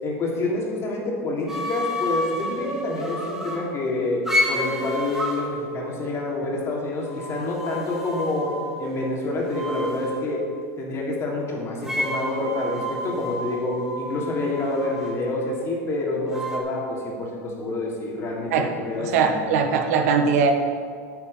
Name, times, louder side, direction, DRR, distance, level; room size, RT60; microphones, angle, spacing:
voice 1, 0.0-10.4 10.8-19.6, left 2 dB, 35° left, -2 dB, 3.2 m, -27 dB
sound 1, 1.5-3.6 4.2-5.4 7.0-9.2 9.5-10.3 11.8-15.2 16.3-16.6, left 1 dB, 5° right, 2.1 m, -30 dB
voice 2, 19.0-20.5, right 5 dB, 75° right, 5 dB, 1.2 m, -20 dB
9.5 x 9.4 x 5.7 m, 2.1 s
supercardioid pair, 115°, 8 cm